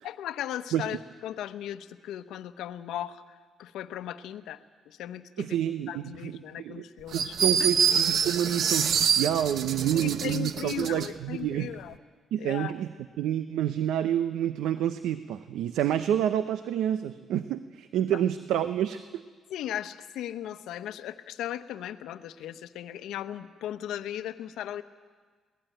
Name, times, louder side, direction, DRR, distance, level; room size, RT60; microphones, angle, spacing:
voice 1, 0.0-3.2 3.6-4.6 4.9-5.6 5.9-7.3 7.6-7.7 9.9-11.9 12.4-12.7 18.1-18.2 19.5-24.8, left 11 dB, 85° left, 11 dB, 0.9 m, -37 dB
voice 2, 5.4-6.8 7.1-11.7 12.3-12.9 13.2-19.2, right 10 dB, 85° right, 12 dB, 0.7 m, -28 dB
sound 1, 7.1-11.1, right 7 dB, 65° right, 1.0 m, -26 dB
22.0 x 18.0 x 9.1 m, 1.5 s
cardioid pair, 90°, 0 cm